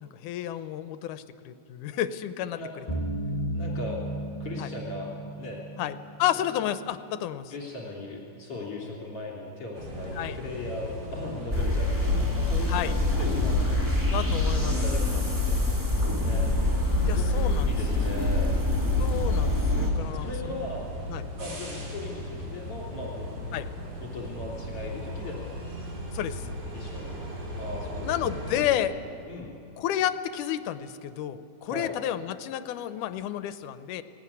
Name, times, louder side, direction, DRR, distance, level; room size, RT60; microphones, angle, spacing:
voice 1, 0.0-2.9 4.6-4.7 5.8-7.5 10.2-10.4 12.7-12.9 14.1-14.8 17.1-17.8 19.0-20.6 21.1-21.2 23.5-23.7 26.1-26.4 28.0-29.0 29.8-34.0, left 11 dB, 80° left, 12 dB, 2.2 m, -31 dB
sound 1, 2.9-6.6, right 1 dB, 15° left, 1.7 m, -34 dB
voice 2, 3.5-4.0 4.4-5.1 5.4-5.6 7.5-15.6 16.2-16.5 17.1-18.6 20.2-20.8 21.4-23.6 24.0-25.5 26.7-27.2 27.6-28.1 28.4-29.5 31.6-31.9, left 2 dB, 45° left, -2 dB, 3.8 m, -38 dB
sound 2, 9.7-28.7, equal, 70° right, 5.0 m, -37 dB
sound 3, 11.5-19.9, left 2 dB, 10° right, 1.5 m, -25 dB
18.5 x 17.0 x 9.8 m, 2.5 s
omnidirectional pair, 3.7 m